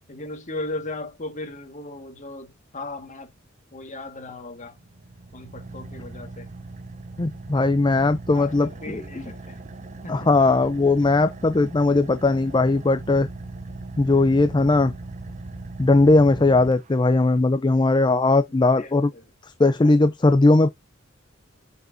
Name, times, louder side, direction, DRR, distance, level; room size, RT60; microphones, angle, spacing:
voice 1, 0.1-3.3 3.7-4.8 5.3-6.5 8.3-9.6 10.0-10.3 18.8-19.2 19.8-19.9, left 2 dB, 40° left, 1.7 m, -37 dB
Car / Idling, 4.4-17.4, right 2 dB, 35° right, 0.7 m, -39 dB
voice 2, 7.2-9.2 10.1-13.3 14.0-14.9 15.8-19.1 19.6-20.7, left 2 dB, 25° left, 0.5 m, -19 dB
6.6 x 6.5 x 2.7 m
head